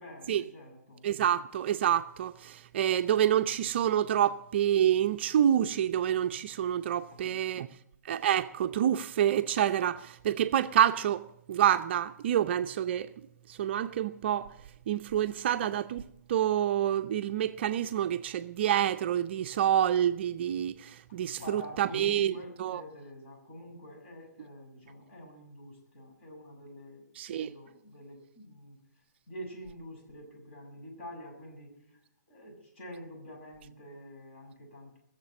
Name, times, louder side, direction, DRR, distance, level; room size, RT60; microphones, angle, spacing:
voice 1, 0.0-1.0 7.1-7.6 21.4-27.0 27.3-28.8 29.3-31.7 32.3-35.0, equal, 40° left, 7.3 m, -47 dB
voice 2, 1.0-7.7 8.1-13.1 13.5-14.5 14.9-22.3 22.6-22.8 27.2-27.5, right 10 dB, 40° right, 0.5 m, -27 dB
19.5 x 7.4 x 8.7 m
hypercardioid pair, 145°, 9 cm